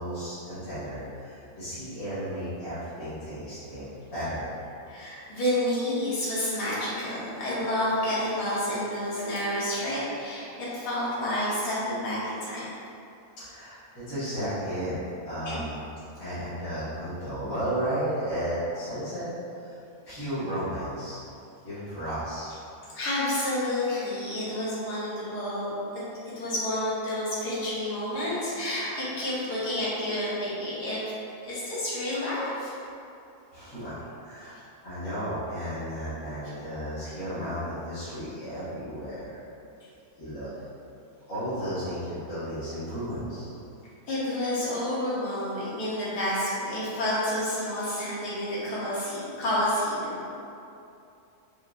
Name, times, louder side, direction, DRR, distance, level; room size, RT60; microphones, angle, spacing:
voice 1, 0.0-3.8 4.1-4.7 13.4-15.0 15.2-15.8 16.2-19.3 19.6-19.8 20.0-21.2 21.6-22.5 33.5-34.6 34.8-39.4 40.2-40.5 41.3-43.4, equal, 60° left, -17 dB, 1.8 m, -33 dB
voice 2, 4.9-12.7 15.4-15.6 22.9-26.0 26.3-31.0 31.4-32.7 44.1-50.2, left 1 dB, 85° left, -9 dB, 1.7 m, -29 dB
5.0 x 2.7 x 2.4 m, 2.6 s
omnidirectional pair, 1.7 m